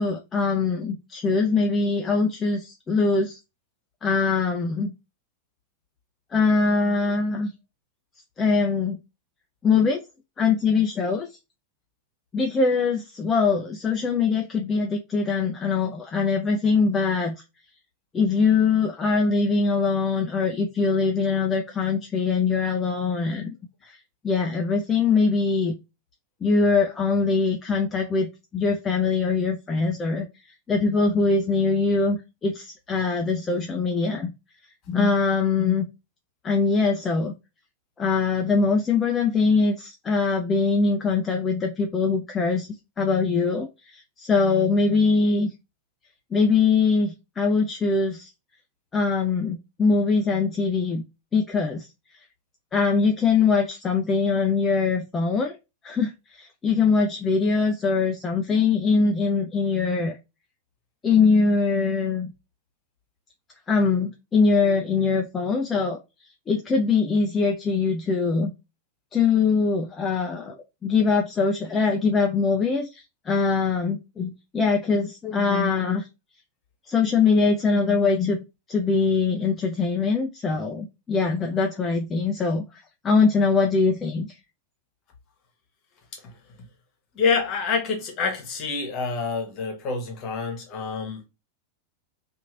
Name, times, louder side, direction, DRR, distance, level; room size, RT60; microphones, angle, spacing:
voice 1, 0.0-3.4 4.0-4.9 6.3-7.5 8.4-9.0 9.6-10.0 10.4-11.3 12.3-17.3 18.1-23.5 23.8-24.0 24.2-25.8 26.4-30.3 30.7-34.3 34.9-35.9 36.4-37.3 38.0-42.7 43.0-45.5 46.3-48.3 48.9-51.0 51.3-51.9 52.7-55.6 55.8-60.2 61.0-62.3 63.7-66.0 66.5-68.5 69.1-76.1 76.9-78.4 78.7-84.4, left 4 dB, 20° left, 0.4 m, -22 dB
voice 2, 86.1-86.7 87.1-91.3, left 5 dB, 35° left, 1.1 m, -27 dB
2.9 x 2.6 x 2.4 m
figure-of-eight pair, 90°, 0 cm